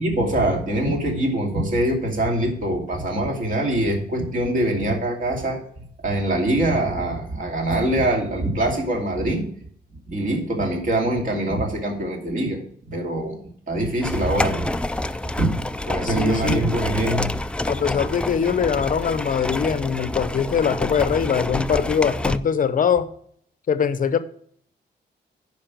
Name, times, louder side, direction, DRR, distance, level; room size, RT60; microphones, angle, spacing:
voice 1, 0.0-5.6 6.0-9.4 10.1-13.4 13.7-14.8 15.4-15.6 15.9-17.3, right 1 dB, 50° right, 1 dB, 2.5 m, -23 dB
sound 1, 14.0-22.4, left 1 dB, 5° left, 0.3 m, -27 dB
voice 2, 16.1-16.6 17.7-23.1 23.7-24.2, left 7 dB, 50° left, 12 dB, 0.7 m, -22 dB
10.0 x 5.4 x 6.0 m, 0.64 s
wide cardioid pair, 145°, 18 cm